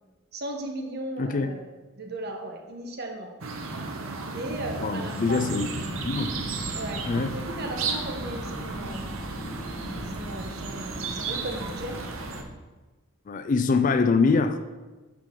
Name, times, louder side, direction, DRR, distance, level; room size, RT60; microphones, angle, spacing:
voice 1, 0.3-1.7 2.0-3.3 4.2-5.4 6.7-9.1 9.9-12.0, right 1 dB, 50° right, 3 dB, 1.0 m, -36 dB
voice 2, 1.2-1.6 4.8-6.3 7.1-7.4 13.3-14.6, left 4 dB, 40° left, 9 dB, 0.3 m, -24 dB
sound 1, 3.4-12.4, right 3 dB, 85° right, 0.8 m, -34 dB
sound 2, 5.9-12.4, equal, 15° left, 1.1 m, -39 dB
10.0 x 4.8 x 3.8 m, 1.2 s
head